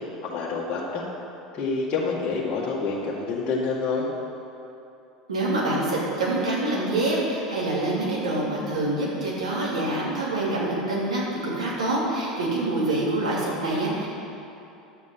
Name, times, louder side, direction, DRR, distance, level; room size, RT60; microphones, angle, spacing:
voice 1, 0.2-1.1 1.5-4.1, left 4 dB, 35° left, -5 dB, 1.8 m, -27 dB
voice 2, 5.3-14.1, right 2 dB, 75° right, -5 dB, 2.9 m, -26 dB
11.0 x 8.3 x 5.7 m, 2.8 s
figure-of-eight pair, 75°, 4 cm